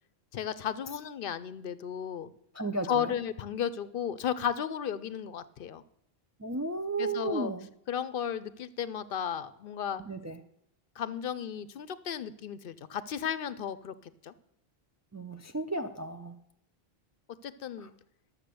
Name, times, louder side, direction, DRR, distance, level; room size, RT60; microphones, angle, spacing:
voice 1, 0.3-2.3 2.9-5.8 7.0-7.5 7.9-10.0 11.0-13.9 14.2-14.3 17.4-17.9, left 8 dB, 65° left, 0.7 m, -34 dB
voice 2, 2.5-3.1 6.4-7.7 10.0-10.4 15.1-16.4 17.8-17.9, right 2 dB, 25° right, 0.3 m, -34 dB
12.0 x 7.3 x 6.8 m
omnidirectional pair, 1.1 m